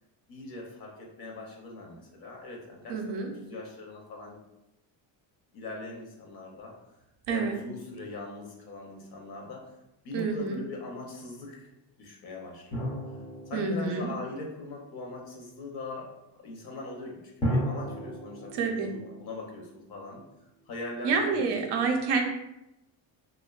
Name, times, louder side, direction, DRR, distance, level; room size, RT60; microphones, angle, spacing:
voice 1, 0.3-4.4 5.5-6.7 7.3-9.7 10.0-11.7 12.0-13.0 13.5-20.2 20.7-21.5, left 2 dB, 50° left, 0 dB, 0.6 m, -41 dB
voice 2, 2.9-3.3 7.3-7.6 10.1-10.6 13.5-14.1 18.5-18.9 21.0-22.2, right 4 dB, 60° right, 3 dB, 0.5 m, -28 dB
sound 1, 12.7-15.0 17.4-20.3, equal, 10° left, 0.3 m, -35 dB
2.5 x 2.2 x 2.2 m, 0.89 s
cardioid pair, 125°, 48 cm